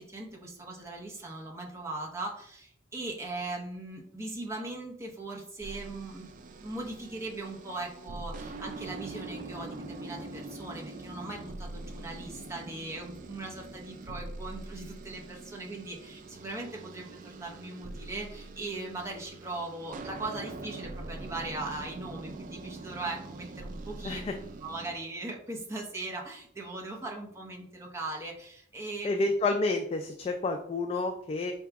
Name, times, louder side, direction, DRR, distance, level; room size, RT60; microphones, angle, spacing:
voice 1, 0.0-6.3 6.6-24.2 24.6-29.1, right 2 dB, 15° right, -1 dB, 0.8 m, -39 dB
sound 1, 5.6-25.0, right 2 dB, 45° right, 0.4 m, -43 dB
voice 2, 24.0-24.4 29.0-31.5, left 3 dB, 30° left, 5 dB, 0.3 m, -29 dB
4.6 x 2.9 x 3.4 m, 0.65 s
head